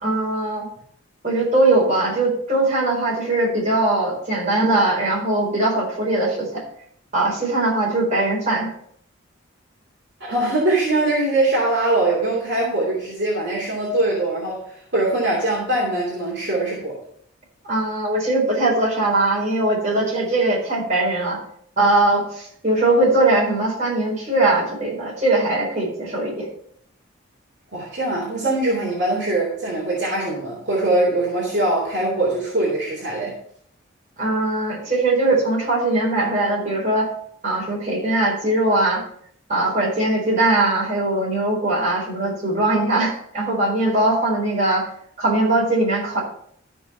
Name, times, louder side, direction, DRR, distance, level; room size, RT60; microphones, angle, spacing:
voice 1, 0.0-0.7 1.2-6.6 7.1-8.7 17.6-21.4 21.8-26.5 34.2-37.1 37.4-39.0 39.5-44.9 45.2-46.2, right 2 dB, 35° right, -4 dB, 4.5 m, -20 dB
voice 2, 10.2-17.0 27.7-33.3, right 2 dB, 55° right, -5 dB, 2.8 m, -22 dB
13.0 x 6.2 x 4.5 m, 0.65 s
head